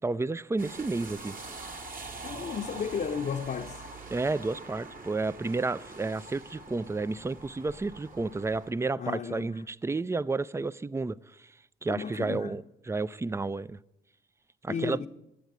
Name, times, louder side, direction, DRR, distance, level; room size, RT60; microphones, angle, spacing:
voice 1, 0.0-1.3 4.1-11.5 11.8-13.8 14.6-15.1, right 3 dB, 15° right, 0.4 m, -31 dB
sound 1, 0.6-8.7, right 2 dB, 50° right, 2.0 m, -44 dB
voice 2, 2.2-3.8 9.0-9.5 11.9-12.5 14.7-15.1, left 6 dB, 50° left, 0.8 m, -33 dB
10.5 x 8.0 x 9.5 m
cardioid pair, 65°, 18 cm